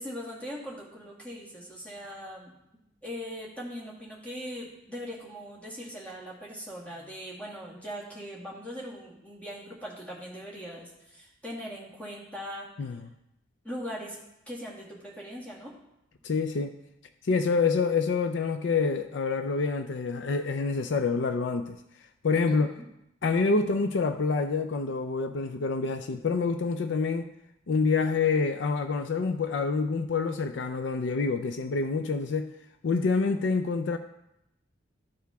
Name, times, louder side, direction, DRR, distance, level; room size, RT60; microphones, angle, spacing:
voice 1, 0.0-2.5 3.0-12.7 13.6-14.2 14.5-15.7 22.5-22.8, equal, 5° left, 2.0 m, -40 dB
voice 2, 16.2-16.7 17.2-21.8 22.2-22.8 23.2-27.3 27.7-32.5 32.8-34.0, left 4 dB, 65° left, 0.4 m, -27 dB
13.5 x 4.7 x 3.4 m
head